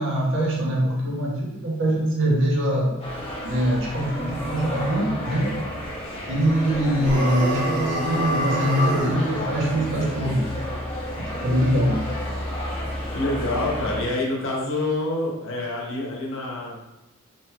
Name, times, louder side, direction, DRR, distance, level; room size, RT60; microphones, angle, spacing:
voice 1, 0.0-2.9 3.4-5.5 6.3-10.5 11.2-12.0, right 1 dB, 60° right, -2 dB, 0.7 m, -23 dB
sound 1, 3.0-14.0, equal, 25° left, 0.6 m, -31 dB
sound 2, 7.0-9.2, right 1 dB, 75° right, 1.3 m, -26 dB
voice 2, 13.1-16.8, left 2 dB, 65° left, -2 dB, 0.8 m, -27 dB
2.9 x 2.2 x 3.0 m, 0.96 s
head